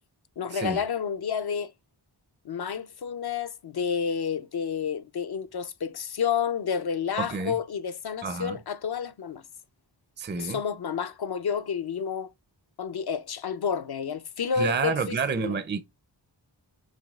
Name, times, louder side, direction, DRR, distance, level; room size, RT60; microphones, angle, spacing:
voice 1, 0.4-1.7 2.4-9.4 10.4-12.3 12.8-15.6, left 7 dB, 60° left, 0.5 m, -30 dB
voice 2, 7.2-7.6 8.2-8.6 10.2-10.6 14.6-15.8, right 5 dB, 25° right, 0.4 m, -29 dB
6.1 x 2.3 x 2.3 m
wide cardioid pair, 50°, 45 cm